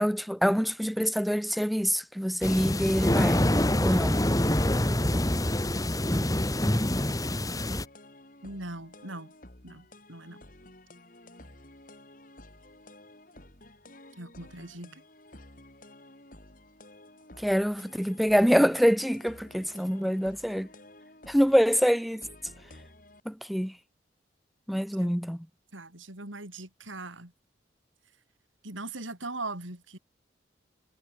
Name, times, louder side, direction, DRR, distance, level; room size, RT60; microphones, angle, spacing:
voice 1, 0.0-3.5 3.8-4.2 17.4-20.7 21.3-22.3 23.3-23.7 24.7-25.5, equal, ahead, 2.1 m, -25 dB
sound 1, 2.4-7.9, left 1 dB, 20° left, 1.7 m, -26 dB
sound 2, 7.5-23.2, left 1 dB, 45° left, 6.4 m, -52 dB
voice 2, 8.4-9.3 9.6-10.4 14.2-15.0 25.0-25.2 25.7-27.3 28.6-30.0, right 2 dB, 90° right, 6.2 m, -40 dB
head